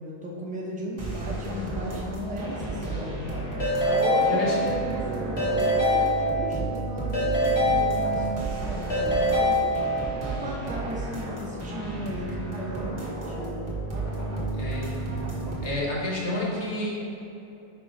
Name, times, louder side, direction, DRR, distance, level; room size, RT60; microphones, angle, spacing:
voice 1, 0.0-3.4 3.8-9.8 10.2-13.6, right 1 dB, 10° right, -4 dB, 0.5 m, -35 dB
sound 1, 1.0-15.7, right 2 dB, 30° right, 1.1 m, -33 dB
Keyboard (musical) / Ringtone, 3.6-4.9 5.4-6.7 7.1-8.5 8.9-10.2, equal, 70° left, 2.2 m, -24 dB
voice 2, 14.6-15.2 15.6-16.9, left 2 dB, 45° left, -5 dB, 1.5 m, -30 dB
5.2 x 5.1 x 4.8 m, 2.9 s
omnidirectional pair, 1.6 m